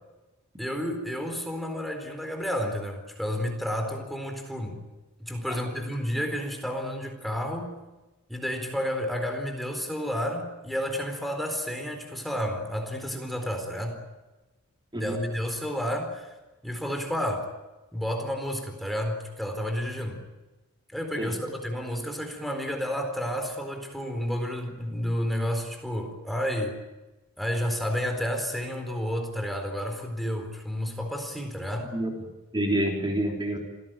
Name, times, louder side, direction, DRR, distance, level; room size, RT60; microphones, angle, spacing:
voice 1, 0.6-4.8 5.2-7.8 8.3-14.0 14.9-16.3 16.6-17.5 17.9-20.2 20.9-26.8 27.4-31.9, equal, ahead, 4 dB, 4.2 m, -31 dB
voice 2, 32.5-33.6, right 1 dB, 20° right, 1 dB, 3.8 m, -28 dB
27.0 x 18.0 x 9.2 m, 1.1 s
head